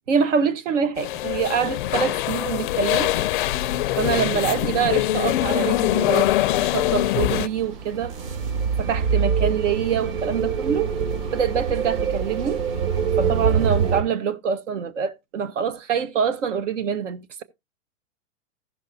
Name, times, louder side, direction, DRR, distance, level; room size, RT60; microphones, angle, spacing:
voice 1, 0.1-3.2 3.9-6.3 6.6-8.1 8.8-10.9 11.3-12.6 13.2-17.4, right 7 dB, 75° right, 1.1 m, -25 dB
sound 1, 1.0-7.5, left 14 dB, 45° left, 0.4 m, -23 dB
sound 2, 6.7-14.0, right 6 dB, 50° right, 2.9 m, -25 dB
15.5 x 6.4 x 2.7 m
hypercardioid pair, 150°, 37 cm